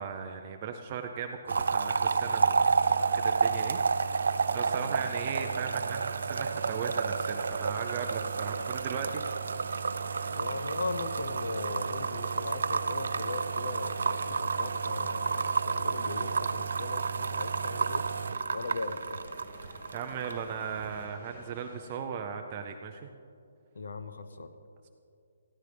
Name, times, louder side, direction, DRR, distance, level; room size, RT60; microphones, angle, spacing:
voice 1, 0.0-9.2 19.6-23.1, right 7 dB, 20° right, 4 dB, 0.4 m, -38 dB
sound 1, 1.5-20.4 20.7-21.1, right 5 dB, 70° right, 0.5 m, -30 dB
sound 2, 2.7-21.6, right 1 dB, ahead, 0.9 m, -55 dB
sound 3, 5.1-22.0, equal, 45° left, 4.2 m, -53 dB
voice 2, 10.3-18.1 18.5-19.2 23.7-24.5, left 3 dB, 70° left, 9 dB, 0.8 m, -38 dB
20.0 x 14.5 x 3.4 m, 2.5 s
hypercardioid pair, 180°, 0 cm